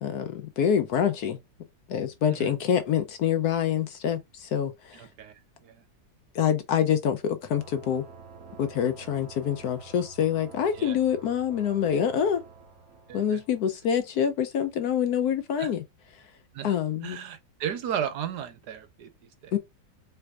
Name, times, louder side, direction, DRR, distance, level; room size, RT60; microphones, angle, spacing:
voice 1, 0.0-1.4 1.9-5.1 6.3-8.0 8.6-12.4 13.1-15.8 16.6-17.2 19.5-19.6, left 8 dB, 70° left, 1.0 m, -26 dB
voice 2, 2.2-2.5 4.9-5.8 8.8-8.9 10.7-11.0 13.1-13.4 15.6-15.7 16.5-16.7 17.0-19.6, right 9 dB, 70° right, 1.2 m, -35 dB
sound 1, 7.5-14.7, right 5 dB, 50° right, 2.3 m, -49 dB
4.5 x 3.3 x 2.3 m
omnidirectional pair, 2.0 m